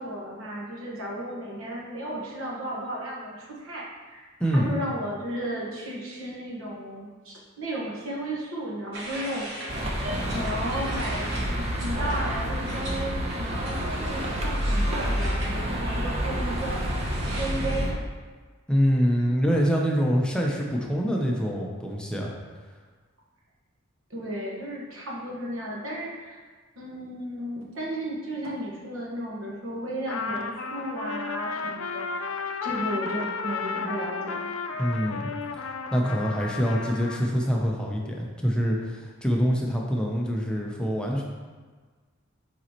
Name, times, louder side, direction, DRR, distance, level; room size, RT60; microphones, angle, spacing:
voice 1, 0.0-4.3 4.5-13.8 14.1-16.8 17.3-18.0 24.1-26.4 26.8-32.3 32.6-34.5, right 1 dB, 85° right, -3 dB, 1.4 m, -34 dB
voice 2, 4.4-4.7 18.7-22.3 34.8-35.3 35.9-41.2, equal, 5° left, -1 dB, 0.6 m, -25 dB
sound 1, 8.9-17.8, right 1 dB, 65° right, 1.2 m, -39 dB
sound 2, 9.7-17.9, equal, 30° right, 0.8 m, -29 dB
Trumpet, 30.1-37.3, left 4 dB, 90° left, 0.5 m, -33 dB
7.7 x 4.1 x 3.0 m, 1.4 s
head